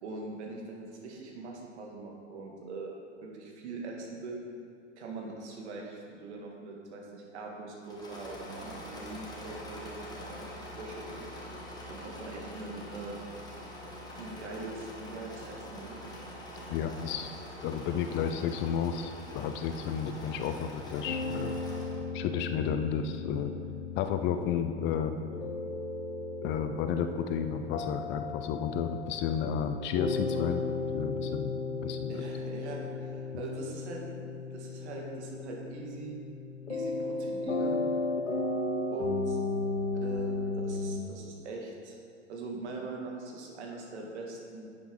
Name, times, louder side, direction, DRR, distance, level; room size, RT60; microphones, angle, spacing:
voice 1, 0.0-2.9 3.2-4.4 5.0-10.4 10.8-11.2 11.9-13.2 14.2-16.0 32.1-36.2 36.7-37.8 38.9-39.4 40.0-40.3 40.6-42.0 42.3-44.7, right 3 dB, 65° right, -1 dB, 2.2 m, -42 dB
Engine / Mechanisms, 7.8-22.1, left 1 dB, 10° left, 1.9 m, -44 dB
voice 2, 16.7-17.3 17.6-21.6 22.1-23.5 24.0-25.1 26.4-30.6 30.9-32.2, left 7 dB, 30° left, 8 dB, 0.5 m, -32 dB
sound 1, 21.1-41.0, left 3 dB, 85° left, 1.1 m, -35 dB
10.5 x 8.5 x 3.8 m, 2.4 s
hypercardioid pair, 95°, 36 cm